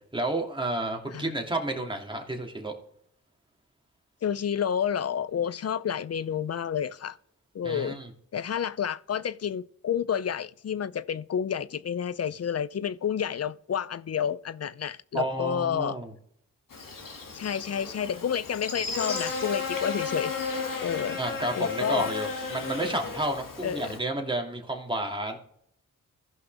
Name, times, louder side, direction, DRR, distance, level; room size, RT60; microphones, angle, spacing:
voice 1, 0.1-2.7 7.6-8.1 15.1-16.1 21.2-25.4, right 1 dB, 15° right, 2.6 m, -31 dB
voice 2, 4.2-7.2 7.5-8.0 8.3-16.0 17.3-20.3 20.8-21.2 21.6-22.1 23.6-23.9, left 8 dB, 45° left, 0.5 m, -30 dB
Buzz, 16.7-24.0, left 5 dB, 70° left, 2.3 m, -34 dB
15.0 x 5.6 x 3.5 m
cardioid pair, 55°, 34 cm